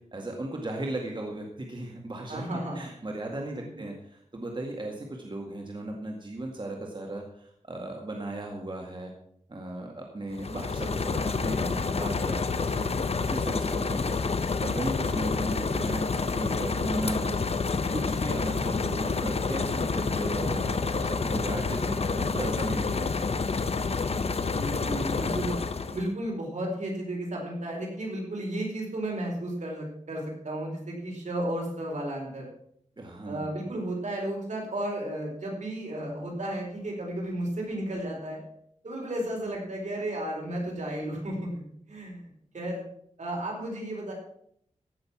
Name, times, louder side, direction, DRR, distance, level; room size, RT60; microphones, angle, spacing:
voice 1, 0.1-2.4 2.8-9.1 9.5-12.9 13.2-14.2 14.6-16.0 16.3-17.4 17.9-23.6 33.0-33.5, right 1 dB, 40° right, 1 dB, 2.0 m, -36 dB
voice 2, 2.3-2.9 24.4-25.5 25.9-32.5 33.2-38.4 38.8-41.5 41.9-42.3 42.5-42.8 43.2-44.1, right 1 dB, 70° right, -1 dB, 4.5 m, -33 dB
sound 1, 10.3-26.1, left 4 dB, 55° left, 0.8 m, -28 dB
16.0 x 6.8 x 6.0 m, 0.69 s
wide cardioid pair, 75°, 13 cm